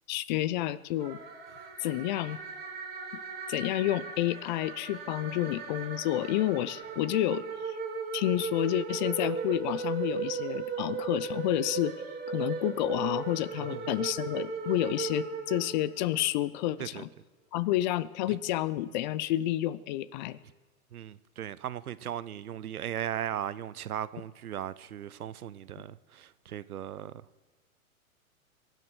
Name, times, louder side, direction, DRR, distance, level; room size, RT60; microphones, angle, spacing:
voice 1, 0.1-1.2 1.8-2.4 3.5-7.8 8.1-11.9 12.3-17.1 17.5-20.4, left 14 dB, 35° left, 0.4 m, -30 dB
sound 1, 1.0-16.3, right 5 dB, 20° right, 3.7 m, -37 dB
voice 2, 20.9-27.2, right 10 dB, 85° right, 0.7 m, -37 dB
23.0 x 7.9 x 6.2 m
hypercardioid pair, 110°, 43 cm